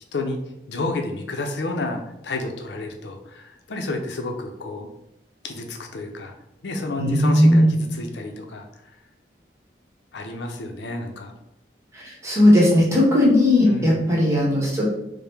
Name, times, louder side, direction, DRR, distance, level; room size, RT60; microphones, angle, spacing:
voice 1, 0.7-4.9 5.4-6.3 6.6-8.6 10.1-11.4 13.6-14.0, left 2 dB, 80° left, 3 dB, 0.5 m, -30 dB
voice 2, 7.0-7.7 11.9-14.8, left 1 dB, 15° right, -3 dB, 1.0 m, -17 dB
4.7 x 2.1 x 3.3 m, 0.86 s
head